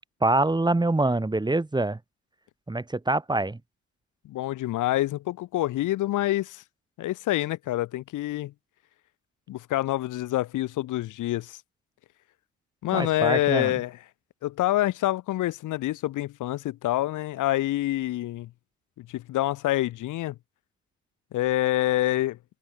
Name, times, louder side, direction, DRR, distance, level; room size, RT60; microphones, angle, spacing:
voice 1, 0.2-2.0 2.7-3.6 12.9-13.8, right 2 dB, 15° right, 2.2 m, -25 dB
voice 2, 4.2-6.6 7.0-8.5 9.5-11.6 12.8-14.0 14.4-18.5 19.0-20.4 21.3-22.4, left 15 dB, 85° left, 2.4 m, -27 dB
cardioid pair, 90°, 30 cm